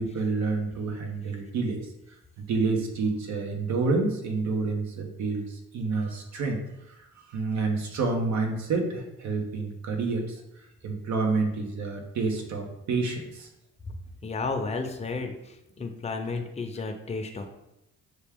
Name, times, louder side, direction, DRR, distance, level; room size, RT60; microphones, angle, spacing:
voice 1, 0.0-1.8 2.4-6.6 7.3-10.4 10.8-13.5, right 3 dB, 70° right, 2 dB, 1.0 m, -28 dB
voice 2, 14.2-15.3 15.8-17.5, left 3 dB, 20° left, 4 dB, 0.6 m, -32 dB
6.1 x 2.4 x 3.5 m, 0.86 s
cardioid pair, 90°, 30 cm